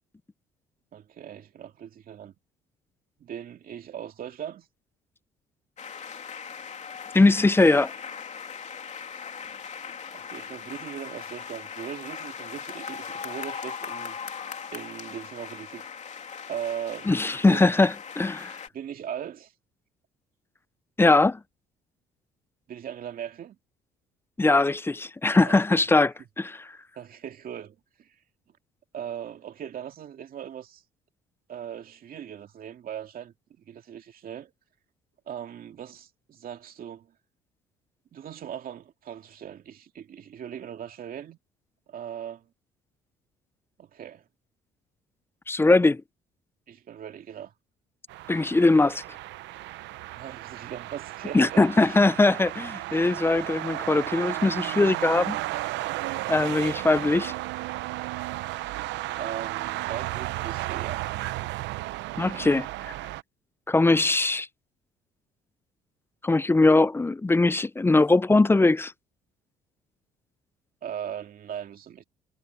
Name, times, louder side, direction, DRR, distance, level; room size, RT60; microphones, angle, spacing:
voice 1, 0.9-2.3 3.2-4.7 10.1-14.2 14.7-15.9 16.5-17.1 17.4-17.7 18.7-19.5 22.7-23.6 25.4-25.8 27.0-28.1 28.9-30.8 31.5-33.3 33.6-34.5 35.3-37.1 38.1-41.4 41.9-42.5 43.8-44.2 46.7-47.5 50.1-52.0 59.2-61.0 70.8-72.0, right 9 dB, 50° right, 2.4 m, -39 dB
sound 1, 5.8-18.7, left 6 dB, 40° left, 3.1 m, -39 dB
voice 2, 7.1-7.9 17.1-18.5 21.0-21.4 24.4-26.7 45.5-46.0 48.3-49.0 51.3-55.4 56.3-57.3 62.2-62.7 63.7-64.5 66.2-68.9, left 2 dB, 10° left, 0.5 m, -21 dB
sound 2, 48.1-63.2, right 17 dB, 80° right, 0.7 m, -34 dB
cardioid pair, 105°, 18 cm